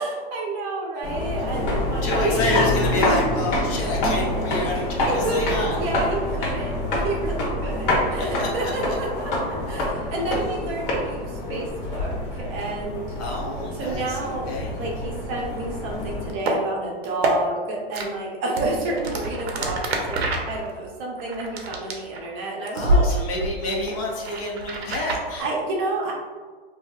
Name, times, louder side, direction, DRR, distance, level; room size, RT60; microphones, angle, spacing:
voice 1, 0.0-2.6 4.5-13.1 13.8-20.2 20.5-23.2 25.3-26.1, right 2 dB, 30° right, -2 dB, 0.6 m, -30 dB
sound 1, 1.0-16.3, left 1 dB, 60° left, 1.0 m, -26 dB
voice 2, 2.0-5.8 8.2-8.7 13.2-14.7 22.7-25.4, left 1 dB, 35° left, -2 dB, 0.5 m, -28 dB
sound 2, 16.3-16.6 17.0-17.3 17.9-18.1 18.5-22.4 22.8-23.0 23.4-25.2, right 1 dB, 90° right, 0.6 m, -26 dB
3.2 x 2.6 x 2.3 m, 1.5 s
hypercardioid pair, 140°, 31 cm